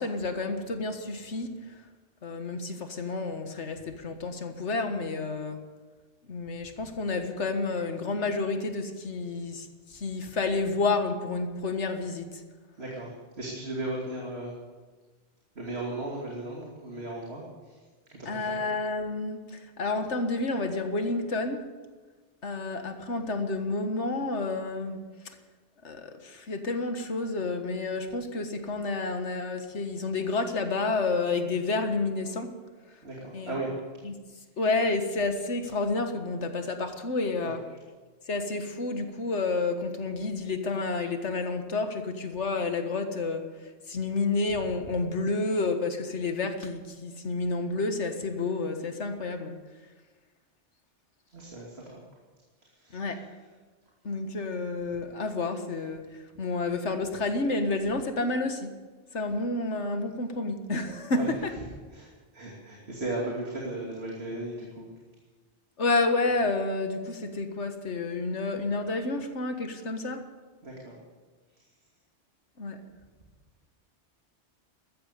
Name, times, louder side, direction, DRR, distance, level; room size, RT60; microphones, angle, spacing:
voice 1, 0.0-1.5 2.2-5.6 6.3-12.4 18.3-21.6 22.4-25.0 25.8-32.5 33.3-33.6 34.0-34.1 34.6-37.6 38.3-43.4 43.9-49.6 52.9-53.2 54.0-56.0 56.4-58.7 59.1-61.5 65.8-70.2 72.6-72.8, left 3 dB, 85° left, 6 dB, 1.8 m, -30 dB
voice 2, 12.8-13.1 13.4-14.5 15.6-17.4 18.3-18.6 33.0-33.9 37.4-37.6 51.3-52.0 52.8-53.0 61.1-61.3 61.9-64.9 70.6-70.9, right 2 dB, 65° right, -3 dB, 3.0 m, -36 dB
15.0 x 13.5 x 6.8 m, 1.3 s
omnidirectional pair, 1.2 m